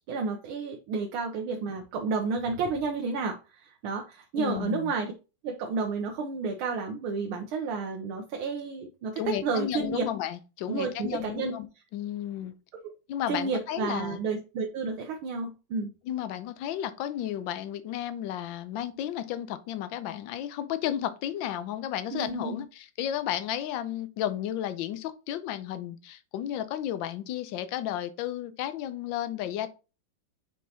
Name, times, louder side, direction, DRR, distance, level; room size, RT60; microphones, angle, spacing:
voice 1, 0.1-5.1 5.4-10.1 10.7-11.6 13.3-15.9 22.1-22.6, right 4 dB, 85° right, 1.7 m, -31 dB
voice 2, 4.4-4.9 9.2-11.7 11.9-12.5 13.1-14.2 16.0-29.7, left 11 dB, 75° left, 1.4 m, -33 dB
6.6 x 5.4 x 2.8 m
omnidirectional pair, 2.2 m